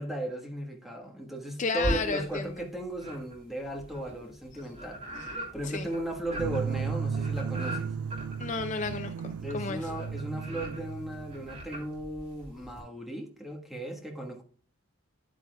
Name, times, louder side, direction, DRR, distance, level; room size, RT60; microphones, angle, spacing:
voice 1, 0.0-5.0 5.5-7.9 9.4-14.4, right 1 dB, ahead, 1.4 m, -36 dB
voice 2, 1.6-2.4 5.6-5.9 8.4-9.9, left 4 dB, 35° left, 0.4 m, -32 dB
sound 1, 1.8-2.6 3.0-12.8, equal, 30° right, 3.3 m, -40 dB
sound 2, 6.4-11.8, right 6 dB, 85° right, 0.3 m, -35 dB
9.9 x 9.1 x 2.3 m
head